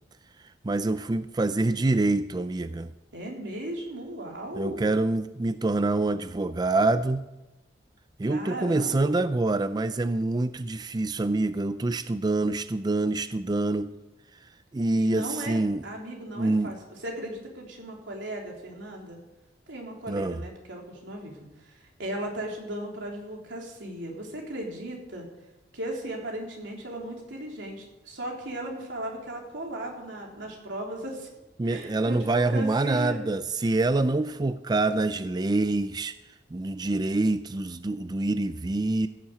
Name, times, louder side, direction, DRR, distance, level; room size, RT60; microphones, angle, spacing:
voice 1, 0.6-2.9 4.5-7.3 8.2-13.9 14.4-15.9 16.4-16.7 20.1-20.4 31.6-36.1 36.5-39.1, right 2 dB, 20° right, 12 dB, 0.4 m, -26 dB
voice 2, 3.1-4.9 8.2-9.1 14.9-16.8 17.0-19.2 19.7-21.4 21.6-25.3 25.7-31.3 31.6-33.2, right 1 dB, 90° right, 0 dB, 3.4 m, -36 dB
15.5 x 7.2 x 7.8 m, 1.0 s
head